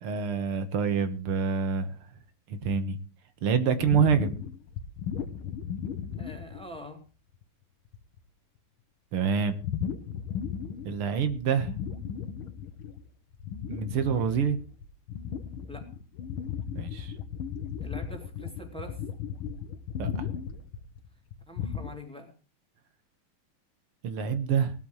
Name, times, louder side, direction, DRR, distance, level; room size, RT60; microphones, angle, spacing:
voice 1, 0.0-1.9 2.5-3.0 3.4-4.3 9.1-9.6 10.9-11.7 13.7-14.6 16.8-17.1 20.0-20.3 24.0-24.7, right 6 dB, 85° right, 10 dB, 2.2 m, -26 dB
sound 1, 3.8-6.9 7.3-7.4 7.9-8.2 9.6-11.0 11.3-13.0 13.3-21.9, left 8 dB, 75° left, 1.8 m, -36 dB
voice 2, 6.2-7.0 15.7-15.9 17.8-19.0 21.5-22.3, left 1 dB, ahead, 3 dB, 2.6 m, -44 dB
18.5 x 13.0 x 3.2 m, 0.35 s
omnidirectional pair, 2.4 m